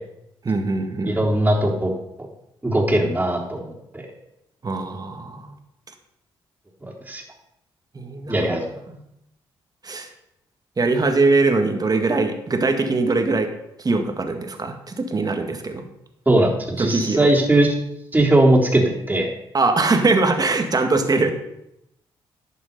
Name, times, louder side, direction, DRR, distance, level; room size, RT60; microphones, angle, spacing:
voice 1, 0.4-1.2 4.6-5.5 7.9-8.5 9.8-10.1 10.8-13.5 13.8-15.8 16.8-17.3 19.5-21.3, right 3 dB, 35° right, 6 dB, 1.9 m, -21 dB
voice 2, 1.0-1.9 2.6-4.0 7.1-7.2 8.3-8.7 16.3-17.7 18.1-19.3, right 1 dB, 15° right, -2 dB, 3.8 m, -19 dB
11.5 x 6.9 x 5.4 m, 0.83 s
supercardioid pair, 55°, 11 cm